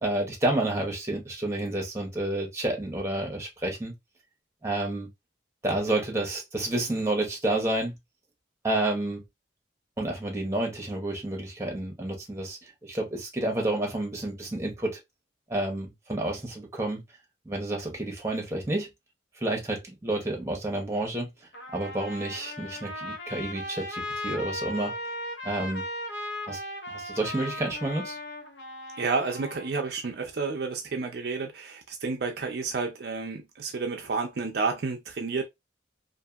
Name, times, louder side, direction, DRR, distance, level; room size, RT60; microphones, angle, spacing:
voice 1, 0.0-3.9 4.6-5.1 5.6-7.9 8.6-9.2 10.0-15.0 15.5-17.0 17.5-18.9 19.4-21.3 21.7-24.9 25.4-25.8 26.5-26.6 26.9-28.2, right 1 dB, 15° right, 0.8 m, -30 dB
Trumpet, 21.5-29.7, left 1 dB, 70° left, 0.7 m, -37 dB
voice 2, 29.0-35.5, right 4 dB, 55° right, 0.4 m, -30 dB
2.7 x 2.6 x 2.3 m
head